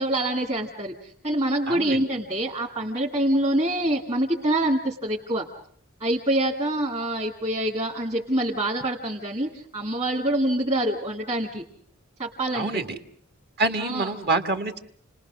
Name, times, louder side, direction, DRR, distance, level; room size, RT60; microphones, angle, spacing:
voice 1, 0.0-5.5 6.0-11.6 12.2-12.8 13.8-14.1, right 1 dB, 30° right, -2 dB, 2.2 m, -26 dB
voice 2, 1.7-2.0 12.5-12.8 13.6-14.8, right 3 dB, 50° right, 8 dB, 1.7 m, -26 dB
29.5 x 20.5 x 6.3 m, 0.63 s
head